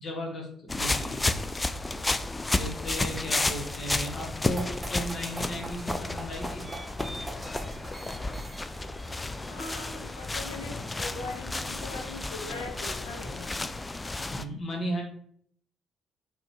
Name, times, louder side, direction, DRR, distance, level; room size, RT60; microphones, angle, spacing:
voice 1, 0.0-1.2 2.5-6.7 14.3-15.0, equal, 45° left, 0 dB, 1.2 m, -35 dB
sound 1, 0.7-14.4, left 2 dB, 20° left, 0.3 m, -32 dB
sound 2, 4.5-12.9, right 1 dB, 20° right, 0.8 m, -44 dB
voice 2, 9.5-13.6, left 3 dB, 85° left, 1 dB, 0.5 m, -41 dB
4.0 x 2.8 x 2.9 m, 0.62 s
figure-of-eight pair, 45°, 0 cm